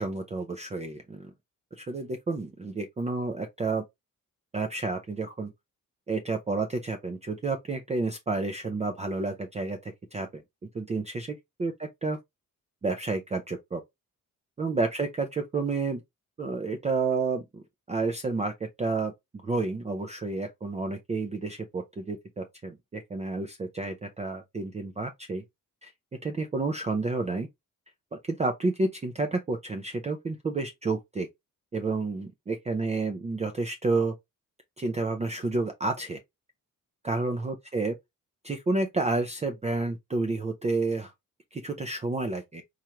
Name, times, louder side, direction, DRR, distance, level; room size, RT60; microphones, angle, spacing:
voice 1, 0.0-1.3 1.7-3.8 4.5-5.5 6.1-10.4 10.7-11.7 12.0-12.2 12.8-13.8 14.6-16.0 16.4-17.6 17.9-18.5 18.8-19.1 19.4-25.4 25.8-25.9 26.2-27.5 28.2-31.3 31.7-34.1 34.8-36.2 37.0-37.9 38.4-41.1 41.5-42.6, right 3 dB, 20° right, 0.4 m, -30 dB
4.4 x 2.4 x 2.8 m
wide cardioid pair, 180°, 33 cm